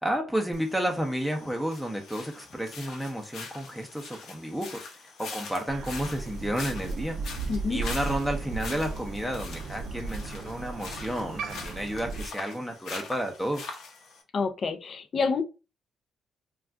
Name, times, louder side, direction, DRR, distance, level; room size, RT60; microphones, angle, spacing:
voice 1, 0.0-13.8, equal, ahead, 0.5 m, -32 dB
sound 1, 0.5-14.2, left 4 dB, 75° left, 0.7 m, -43 dB
Crow, 5.7-12.3, right 4 dB, 65° right, 0.4 m, -36 dB
voice 2, 7.5-7.8 14.3-15.4, left 4 dB, 50° left, 0.4 m, -28 dB
2.4 x 2.2 x 3.5 m
cardioid pair, 90°, 0 cm